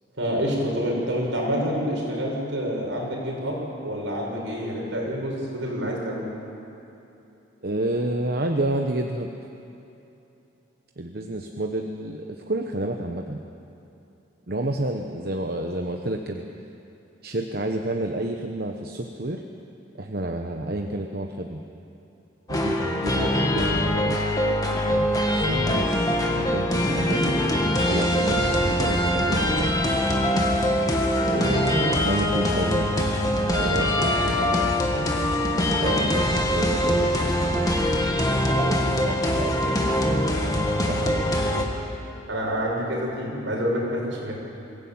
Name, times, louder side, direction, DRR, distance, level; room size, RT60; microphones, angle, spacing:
voice 1, 0.2-3.6 3.8-6.3 42.3-44.3, equal, 75° right, -2 dB, 6.2 m, -27 dB
voice 2, 7.6-9.3 11.0-13.4 14.5-16.4 17.2-19.4 19.9-21.6 22.5-24.2 24.9-27.4 27.9-29.7 31.2-33.0 33.6-37.7 38.3-40.1 40.7-41.4, right 1 dB, 50° right, 3 dB, 1.1 m, -30 dB
sound 1, 22.5-41.6, left 1 dB, 20° left, 1.8 m, -23 dB
23.0 x 16.0 x 8.8 m, 2.9 s
head